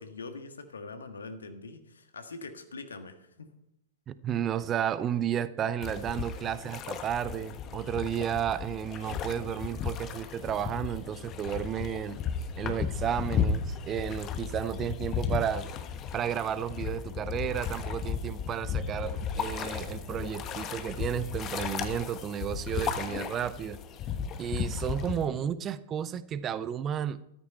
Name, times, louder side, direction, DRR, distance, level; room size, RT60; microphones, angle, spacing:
voice 1, 0.0-3.5, left 3 dB, 75° left, 7 dB, 1.7 m, -43 dB
voice 2, 4.1-12.2 12.6-15.7 16.1-23.8 24.4-27.2, right 9 dB, 25° right, 15 dB, 0.7 m, -32 dB
sound 1, 5.8-25.3, left 7 dB, 30° left, 1.4 m, -35 dB
13.5 x 13.5 x 4.3 m, 0.81 s
figure-of-eight pair, 100°, 0 cm